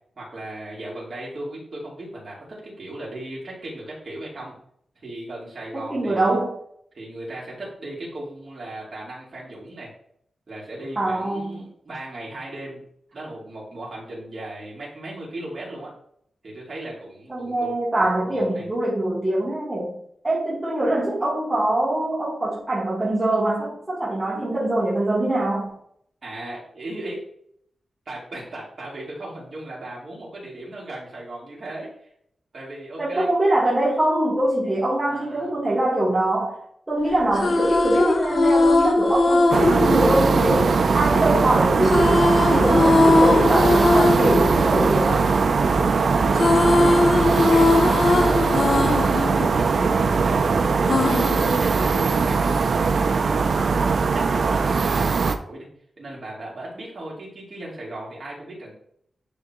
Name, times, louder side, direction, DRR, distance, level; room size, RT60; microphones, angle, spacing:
voice 1, 0.2-4.5 5.0-6.4 6.9-9.9 10.5-12.8 13.1-15.9 16.4-18.7 26.2-27.2 28.1-32.1 32.5-33.3 35.0-35.5 44.5-44.9 45.9-46.4 46.7-53.8 54.1-55.7 56.0-58.7, right 1 dB, 40° right, -5 dB, 2.7 m, -37 dB
voice 2, 5.7-6.6 10.9-11.7 17.3-20.0 20.2-25.8 33.0-36.6 36.9-45.3, right 1 dB, 10° right, -9 dB, 1.6 m, -23 dB
sound 1, 37.1-41.2 41.8-45.9 46.1-50.4 50.9-52.3, left 2 dB, 45° left, 0.5 m, -20 dB
sound 2, 39.5-55.4, right 4 dB, 55° right, 0.4 m, -20 dB
10.0 x 3.5 x 3.0 m, 0.67 s
wide cardioid pair, 170°, 0 cm